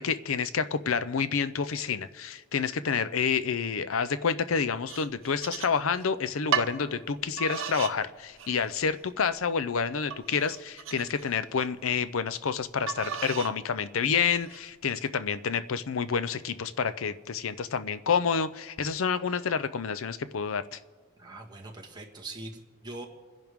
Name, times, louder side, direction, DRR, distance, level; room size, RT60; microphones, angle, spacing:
voice 1, 0.0-20.8, left 6 dB, 70° left, 14 dB, 0.6 m, -29 dB
sound 1, 4.9-6.1 6.5-6.8 7.4-8.0 8.4-8.9 9.4-9.5 10.1-11.7 12.9-13.6 14.1-14.6, right 8 dB, 65° right, 0.9 m, -34 dB
voice 2, 21.2-23.1, right 2 dB, 20° right, 0 dB, 1.7 m, -42 dB
28.5 x 10.5 x 3.6 m, 1.5 s
head